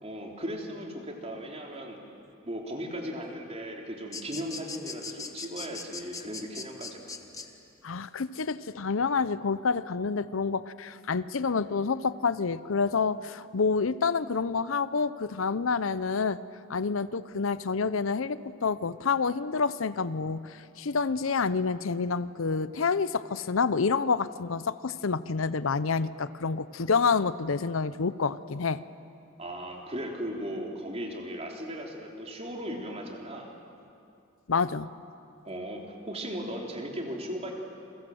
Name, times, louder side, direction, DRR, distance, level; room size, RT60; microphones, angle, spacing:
voice 1, 0.0-2.0 2.4-7.5 29.4-33.5 35.4-37.5, equal, 30° right, 1 dB, 3.5 m, -37 dB
sound 1, 4.1-7.5, left 4 dB, 15° left, 1.3 m, -39 dB
voice 2, 7.8-16.4 16.7-28.8 34.5-34.9, left 5 dB, 80° left, 15 dB, 0.7 m, -28 dB
29.0 x 23.0 x 7.8 m, 2.5 s
head